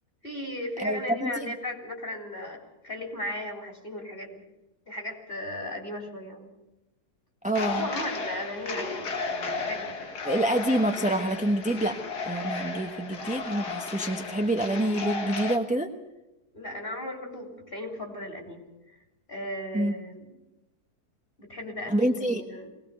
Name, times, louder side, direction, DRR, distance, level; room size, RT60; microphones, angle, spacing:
voice 1, 0.2-4.4 4.9-6.5 7.7-10.1 16.5-18.6 18.9-19.0 19.3-20.2 21.4-22.7, left 1 dB, 35° left, 2 dB, 3.8 m, -36 dB
voice 2, 0.8-1.3 7.4-7.9 10.2-12.0 12.2-15.9 19.7-19.9 21.9-22.4, right 1 dB, 5° right, 4 dB, 0.9 m, -27 dB
sound 1, 7.5-15.6, left 4 dB, 85° left, 2.3 m, -34 dB
21.0 x 19.0 x 6.8 m, 0.98 s
omnidirectional pair, 1.7 m